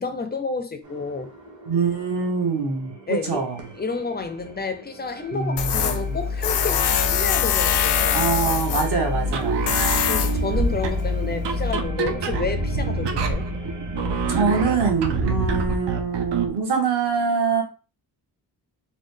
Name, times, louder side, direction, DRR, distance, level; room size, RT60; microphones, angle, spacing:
voice 1, 0.0-1.3 3.1-3.5 3.8-8.2 10.1-13.5, left 4 dB, 25° left, 0.4 m, -30 dB
sound 1, 0.8-14.7, left 1 dB, 45° right, 0.9 m, -34 dB
voice 2, 1.7-3.6 5.3-6.2 8.1-9.6 14.3-17.6, right 5 dB, 70° right, 1.3 m, -24 dB
Tools, 5.6-11.7, left 7 dB, 80° left, 0.6 m, -24 dB
sound 2, 9.2-16.6, right 5 dB, 85° right, 0.6 m, -27 dB
4.0 x 2.2 x 3.2 m
wide cardioid pair, 175°, 41 cm